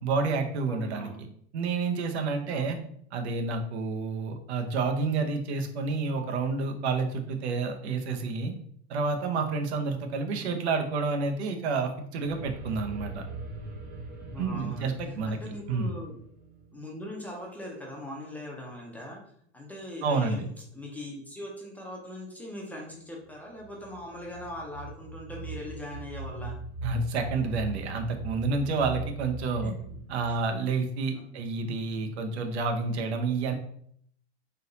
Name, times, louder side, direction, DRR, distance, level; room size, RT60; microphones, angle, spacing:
voice 1, 0.0-1.1 1.5-2.8 3.1-8.5 8.9-13.2 14.4-15.4 15.7-15.9 20.0-20.5 26.8-29.7 30.1-33.5, right 4 dB, 85° right, 5 dB, 0.9 m, -29 dB
voice 2, 0.7-1.3 2.5-2.8 10.2-10.6 14.3-14.9 15.2-16.2 16.7-19.2 19.5-20.4 20.7-26.6 29.6-29.7 31.1-31.6, left 1 dB, 5° left, -2 dB, 0.5 m, -41 dB
sound 1, 12.2-17.2 23.3-30.4, right 3 dB, 25° right, 0.8 m, -40 dB
3.9 x 2.8 x 3.8 m, 0.65 s
supercardioid pair, 155°, 32 cm